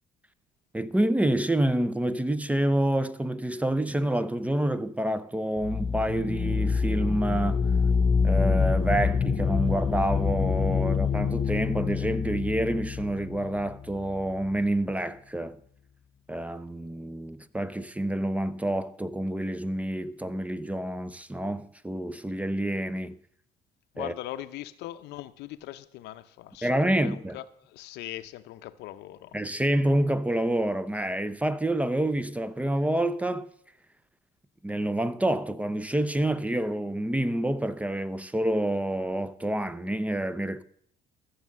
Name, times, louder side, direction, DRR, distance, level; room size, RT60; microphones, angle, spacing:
voice 1, 0.7-7.6 8.2-15.6 16.3-23.2 24.0-24.1 26.6-27.4 29.3-33.5 34.6-40.6, right 1 dB, 10° right, 0.5 m, -28 dB
sound 1, 5.6-14.3, left 5 dB, 30° left, 0.8 m, -26 dB
voice 2, 23.9-29.3, left 14 dB, 85° left, 0.7 m, -40 dB
14.5 x 6.5 x 7.5 m
cardioid pair, 110°, 17 cm